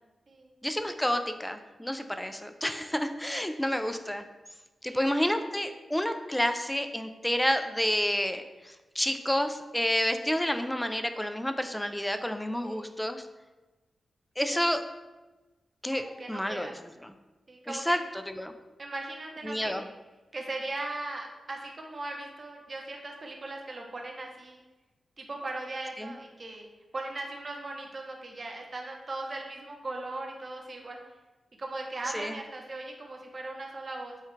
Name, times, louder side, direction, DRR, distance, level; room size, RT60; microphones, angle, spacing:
voice 1, 0.6-4.2 4.8-13.2 14.4-14.8 15.8-17.1 17.7-18.5 19.4-19.8 26.0-26.1 32.1-32.4, equal, 5° left, 8 dB, 0.3 m, -30 dB
voice 2, 12.6-13.0 14.4-14.6 15.9-16.7 17.5-18.0 18.8-19.8 20.3-24.6 25.2-26.6 26.9-31.0 31.6-34.2, right 2 dB, 45° right, 1 dB, 0.8 m, -39 dB
5.6 x 2.3 x 3.1 m, 1.2 s
cardioid pair, 85°, 0 cm